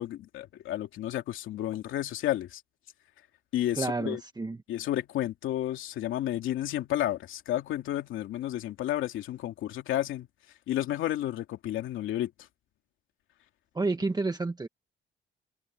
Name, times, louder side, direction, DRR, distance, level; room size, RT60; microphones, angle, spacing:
voice 1, 0.0-2.6 3.5-4.2 4.7-10.3 10.7-12.3, left 13 dB, 85° left, 2.6 m, -31 dB
voice 2, 3.8-4.6 13.7-14.7, right 3 dB, 20° right, 1.3 m, -30 dB
cardioid pair, 90°, 20 cm